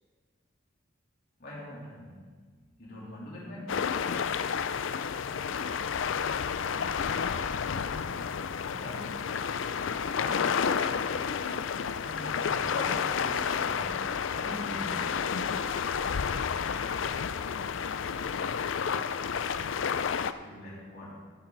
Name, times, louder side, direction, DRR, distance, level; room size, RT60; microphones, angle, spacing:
voice 1, 1.4-2.3 2.8-4.0 8.6-9.3 10.1-10.7 11.9-15.4 20.2-21.2, left 1 dB, 50° left, -6 dB, 3.4 m, -42 dB
sound 1, 3.7-20.3, left 6 dB, 70° left, 0.4 m, -30 dB
voice 2, 14.9-15.3 16.7-18.4, left 1 dB, 35° left, -8 dB, 3.2 m, -52 dB
14.5 x 9.9 x 4.0 m, 1.5 s
head